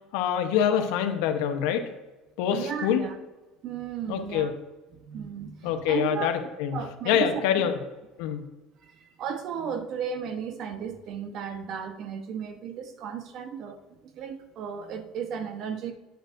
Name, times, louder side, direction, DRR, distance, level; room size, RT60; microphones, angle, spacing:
voice 1, 0.1-1.9 2.4-3.0 4.1-4.5 5.6-6.8 7.0-7.8 8.2-8.5, left 9 dB, 80° left, 6 dB, 0.9 m, -25 dB
voice 2, 2.5-3.1 3.6-4.5 4.9-6.3 6.7-7.4 8.9-15.9, right 7 dB, 55° right, 7 dB, 1.0 m, -34 dB
9.0 x 7.9 x 2.6 m, 1.1 s
supercardioid pair, 105°, 0 cm